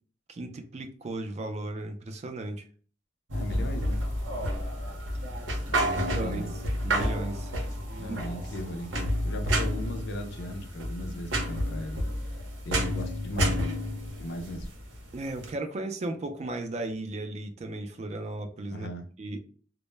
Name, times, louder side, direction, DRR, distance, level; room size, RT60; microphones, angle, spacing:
voice 1, 0.3-2.6 6.2-6.5 6.8-7.6 8.1-8.2 15.1-18.9 19.2-19.4, right 2 dB, 35° right, 0.3 m, -35 dB
voice 2, 3.3-4.0 5.7-6.5 8.0-12.0 12.7-13.8 14.2-14.7 18.7-19.0, left 1 dB, 65° left, 0.4 m, -38 dB
sound 1, 3.3-15.5, equal, 90° right, 0.7 m, -30 dB
2.0 x 2.0 x 3.1 m
head